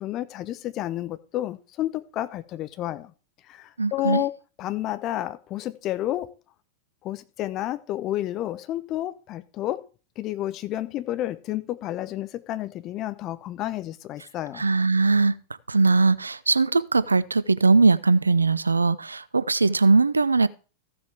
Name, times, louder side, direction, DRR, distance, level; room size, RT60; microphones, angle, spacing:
voice 1, 0.0-3.1 3.5-6.3 7.0-9.8 10.2-14.7, left 14 dB, 35° left, 0.8 m, -30 dB
voice 2, 3.8-4.2 14.6-15.4 15.7-20.5, right 3 dB, 80° right, 0.4 m, -20 dB
14.5 x 7.4 x 3.5 m
figure-of-eight pair, 90°, 0 cm